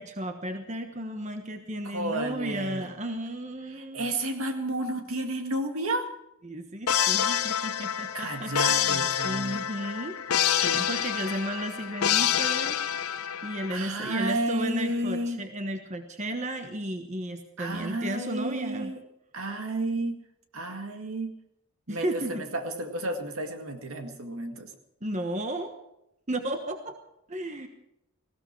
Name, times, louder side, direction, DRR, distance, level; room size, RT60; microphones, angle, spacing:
voice 1, 0.0-4.2 6.4-10.2 10.5-18.9 21.9-22.4 25.0-25.7 26.3-27.0 27.3-27.7, right 1 dB, 30° right, 6 dB, 1.2 m, -34 dB
voice 2, 1.8-2.9 3.7-6.1 8.1-9.7 13.7-15.4 17.6-19.0 19.3-20.2 20.5-21.3 21.9-24.7, right 1 dB, 75° right, 5 dB, 1.9 m, -31 dB
sound 1, 6.9-13.7, left 9 dB, 80° left, 0.7 m, -27 dB
19.0 x 16.0 x 4.6 m, 0.80 s
head